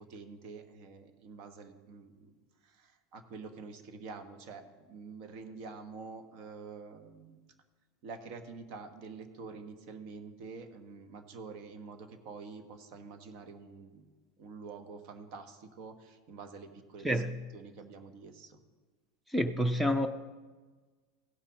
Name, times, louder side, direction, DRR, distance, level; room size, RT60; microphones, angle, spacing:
voice 1, 0.0-2.3 2.6-7.4 8.0-14.1 14.4-17.2 17.5-18.6, right 4 dB, 55° right, 7 dB, 1.4 m, -47 dB
voice 2, 19.3-20.1, equal, 5° right, 9 dB, 0.6 m, -28 dB
16.0 x 5.8 x 5.1 m, 1.3 s
hypercardioid pair, 95°, 0 cm